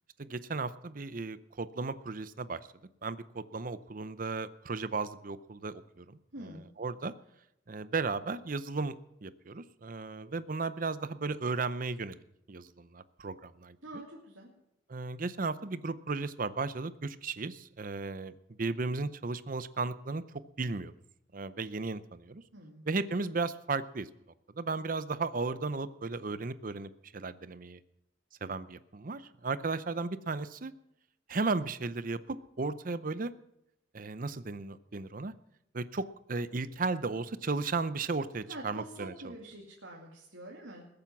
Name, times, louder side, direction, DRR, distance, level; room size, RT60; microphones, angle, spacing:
voice 1, 0.2-2.6 3.0-6.2 6.8-7.1 7.7-8.9 9.2-12.2 12.5-13.8 14.9-18.3 18.6-20.2 20.6-20.9 21.3-22.4 22.9-24.1 24.6-27.8 28.4-30.7 31.3-33.3 33.9-35.3 35.7-39.3, right 3 dB, 45° right, 14 dB, 0.6 m, -35 dB
voice 2, 6.3-6.7 13.8-14.5 22.5-22.9 38.5-40.9, right 1 dB, 85° right, -2 dB, 2.5 m, -46 dB
20.5 x 8.7 x 6.0 m, 0.82 s
head